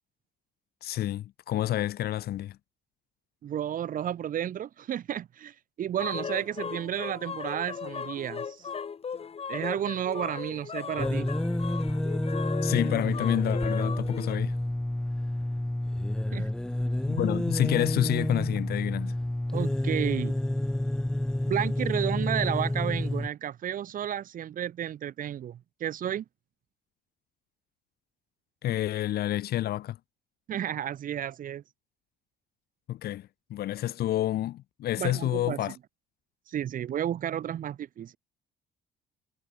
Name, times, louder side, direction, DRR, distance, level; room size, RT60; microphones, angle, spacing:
voice 1, 0.8-2.6 12.6-14.6 17.1-19.2 28.6-30.0 32.9-35.8, left 13 dB, 65° left, 3.0 m, -29 dB
voice 2, 3.4-8.7 9.5-11.3 16.3-16.5 19.5-20.3 21.4-26.2 30.5-31.6 35.0-35.7 36.5-38.1, right 10 dB, 55° right, 2.2 m, -32 dB
sound 1, 6.0-14.4, left 6 dB, 35° left, 5.2 m, -37 dB
sound 2, 11.0-23.3, left 1 dB, 5° left, 0.4 m, -29 dB
cardioid pair, 110°, 17 cm